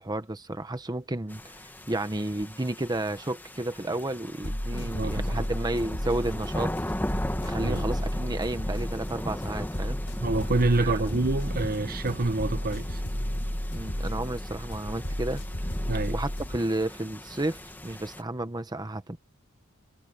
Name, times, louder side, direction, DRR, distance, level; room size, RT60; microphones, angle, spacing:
voice 1, 0.0-6.7 7.4-10.0 10.8-11.0 13.7-15.4 16.1-19.2, right 1 dB, 20° right, 1.0 m, -32 dB
sound 1, 1.3-18.2, left 1 dB, 10° left, 1.4 m, -37 dB
sound 2, 4.4-16.6, equal, 60° left, 6.0 m, -33 dB
voice 2, 4.7-5.4 7.6-7.9 10.2-13.0 15.9-16.2, right 2 dB, 45° right, 1.1 m, -27 dB
head